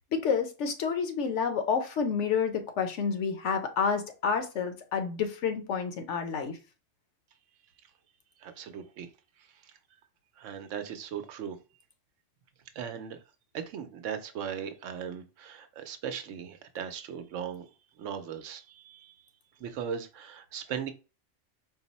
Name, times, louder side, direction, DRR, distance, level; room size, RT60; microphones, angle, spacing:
voice 1, 0.1-6.6, left 6 dB, 75° left, 1.0 m, -29 dB
voice 2, 8.4-9.1 9.6-9.7 10.4-11.6 12.7-13.2 13.5-17.7 18.0-19.2 19.6-20.9, right 8 dB, 90° right, 1.0 m, -38 dB
4.5 x 2.0 x 4.0 m
omnidirectional pair, 1.2 m